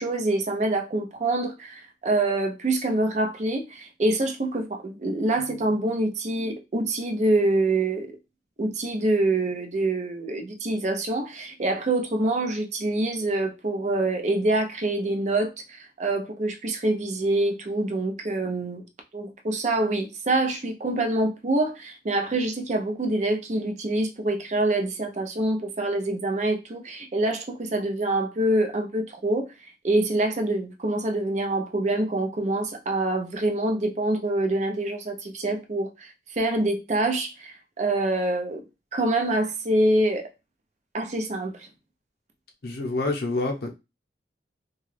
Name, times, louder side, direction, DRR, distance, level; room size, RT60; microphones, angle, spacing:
voice 1, 0.0-8.1 8.6-18.8 19.1-29.5 29.8-38.6 38.9-40.3 40.9-41.7, right 2 dB, 40° right, 0.5 m, -25 dB
voice 2, 42.6-43.7, left 2 dB, 55° left, 0.7 m, -27 dB
2.8 x 2.3 x 3.1 m
head